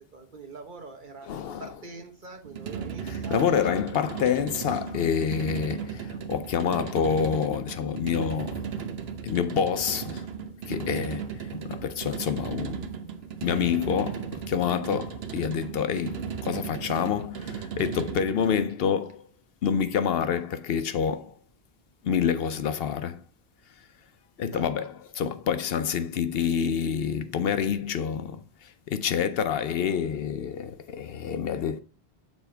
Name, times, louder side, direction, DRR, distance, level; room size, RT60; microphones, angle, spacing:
voice 1, 0.0-3.6 6.9-7.0 12.3-12.4 24.5-24.7, right 3 dB, 50° right, 1.2 m, -44 dB
voice 2, 1.3-1.7 3.1-8.9 9.2-10.3 10.7-12.9 13.4-19.3 19.6-21.4 22.0-23.2 24.4-31.8, left 7 dB, 70° left, 0.8 m, -28 dB
sound 1, 2.4-18.6, right 7 dB, 75° right, 1.0 m, -36 dB
6.9 x 4.2 x 4.4 m
omnidirectional pair, 1.1 m